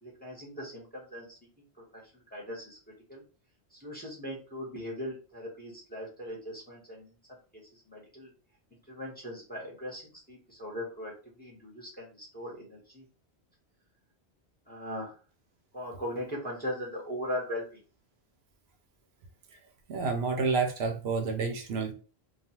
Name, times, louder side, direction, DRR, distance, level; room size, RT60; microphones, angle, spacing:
voice 1, 0.0-1.4 1.9-2.8 3.1-3.2 3.7-7.1 7.5-8.3 8.9-13.0 14.7-15.2 15.7-17.8, equal, 10° left, -3 dB, 0.8 m, -39 dB
voice 2, 19.9-21.9, right 4 dB, 75° right, 4 dB, 0.8 m, -29 dB
2.3 x 2.3 x 2.8 m, 0.36 s
omnidirectional pair, 1.1 m